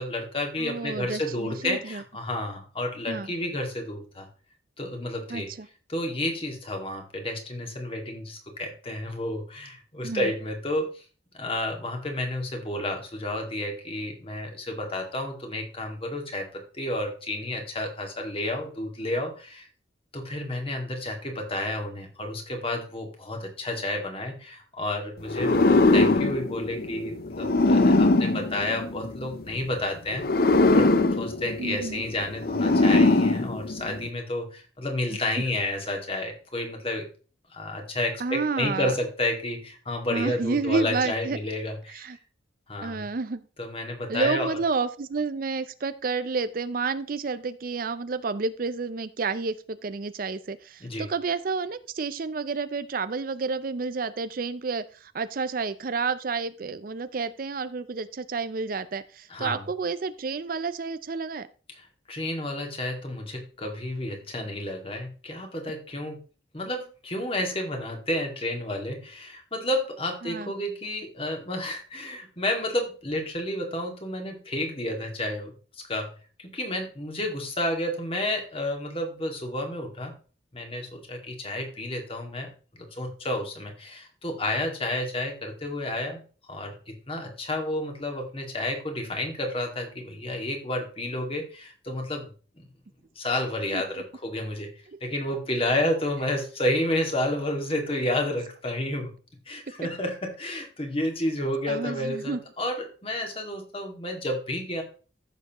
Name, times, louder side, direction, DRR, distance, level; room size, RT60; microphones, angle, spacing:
voice 1, 0.0-4.3 4.8-5.5 5.9-11.0 11.3-19.7 20.1-30.9 31.2-37.1 37.5-42.1 42.7-43.1 43.6-44.5 50.8-51.1 59.3-59.6 61.8-66.2 66.5-76.1 76.4-80.1 80.5-86.2 86.5-92.6 93.2-94.7 95.0-99.1 99.5-104.8, left 1 dB, 30° left, 3 dB, 2.0 m, -31 dB
voice 2, 0.6-2.0 3.1-3.3 5.3-5.7 10.0-10.3 31.6-32.0 35.1-35.2 38.2-38.9 40.1-41.4 41.9-42.2 42.8-43.4 44.1-61.5 70.2-70.5 93.7-93.8 101.7-102.4, right 4 dB, 45° right, 14 dB, 0.5 m, -30 dB
sound 1, 25.3-29.4 30.1-34.1, left 2 dB, 50° left, 0.6 m, -22 dB
14.5 x 6.7 x 3.0 m, 0.37 s
head